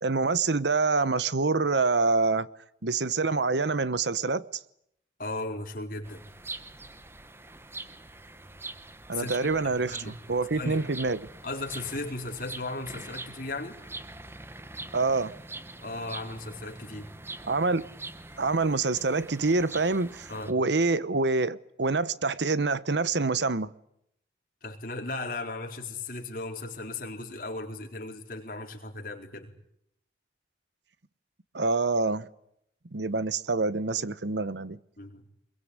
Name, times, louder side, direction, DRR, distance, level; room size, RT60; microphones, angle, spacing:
voice 1, 0.0-2.5 2.8-4.5 9.1-11.3 14.9-15.3 17.5-17.8 18.4-23.7 31.5-32.3 32.9-34.8, right 3 dB, 80° right, 1.0 m, -26 dB
voice 2, 5.2-6.3 9.1-9.4 9.6-10.1 10.5-10.8 11.4-13.8 15.8-17.1 20.3-20.5 24.6-29.5 35.0-35.3, left 2 dB, 50° left, 4.2 m, -36 dB
sound 1, 6.0-20.5, right 2 dB, 15° right, 1.1 m, -44 dB
25.5 x 22.5 x 9.7 m
head